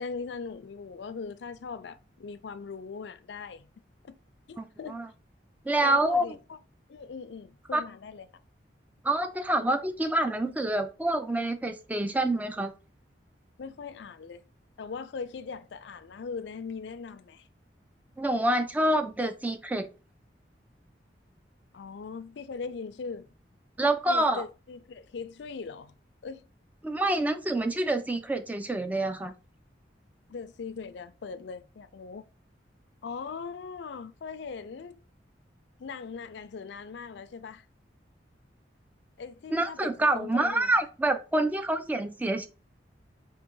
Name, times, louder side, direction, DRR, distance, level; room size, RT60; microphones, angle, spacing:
voice 1, 0.0-3.7 4.0-4.2 4.5-5.0 5.8-6.6 6.9-8.3 13.6-14.4 14.8-17.5 21.7-23.3 24.1-26.0 26.2-26.5 27.6-27.7 30.3-32.3 33.0-35.0 35.8-37.7 39.2-40.7, left 5 dB, 70° left, 0.4 m, -40 dB
voice 2, 4.6-5.1 5.6-6.3 7.7-7.8 9.0-12.7 18.2-19.9 23.8-24.4 26.8-29.3 39.5-42.5, right 1 dB, 10° right, 0.4 m, -27 dB
3.7 x 2.8 x 3.8 m
head